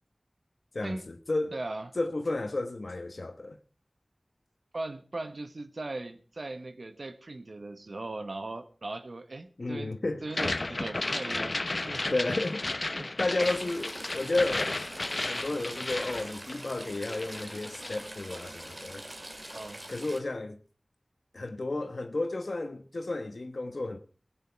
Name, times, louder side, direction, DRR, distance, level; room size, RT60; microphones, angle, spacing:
voice 1, 0.7-1.6 2.0-3.6 9.6-10.2 12.1-12.6 13.2-14.9 15.2-19.0 19.9-20.6 21.3-24.0, left 2 dB, 75° left, 1.1 m, -32 dB
voice 2, 1.5-1.9 4.7-11.6 11.8-12.2 13.0-13.1 19.5-19.8, right 2 dB, 75° right, 1.0 m, -39 dB
sound 1, 10.3-16.8 17.1-18.1, left 2 dB, 55° left, 0.7 m, -33 dB
Stream / Trickle dribble, 13.4-20.2, right 1 dB, 35° right, 2.3 m, -44 dB
17.5 x 9.2 x 4.5 m
wide cardioid pair, 45°, 0 cm